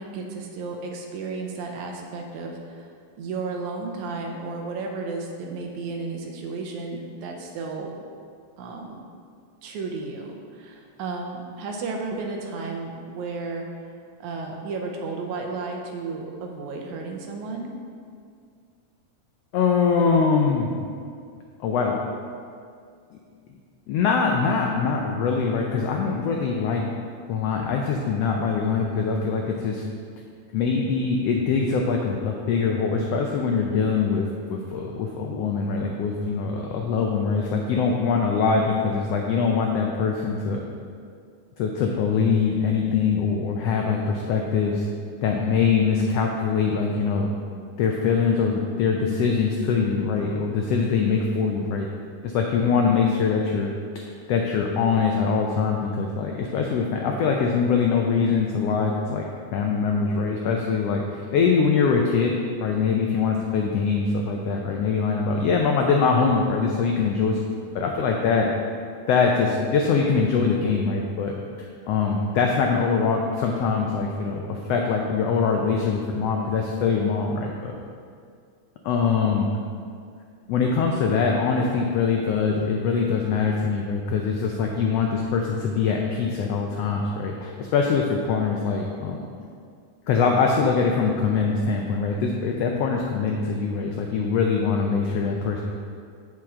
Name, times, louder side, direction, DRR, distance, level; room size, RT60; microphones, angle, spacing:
voice 1, 0.0-2.9 3.2-7.9 8.6-9.0 9.6-13.7 14.2-17.7, right 3 dB, 80° right, 1 dB, 2.1 m, -33 dB
voice 2, 19.5-20.7 21.6-22.0 23.9-26.8 27.3-29.8 30.5-40.6 41.6-44.8 45.2-47.3 47.8-51.9 52.2-59.3 59.5-62.3 62.6-67.4 67.7-68.5 69.1-71.3 71.9-77.7 78.8-79.5 80.5-89.2 90.1-95.6, left 5 dB, 90° left, 1 dB, 1.4 m, -23 dB
7.6 x 7.3 x 3.7 m, 2.2 s
omnidirectional pair, 3.5 m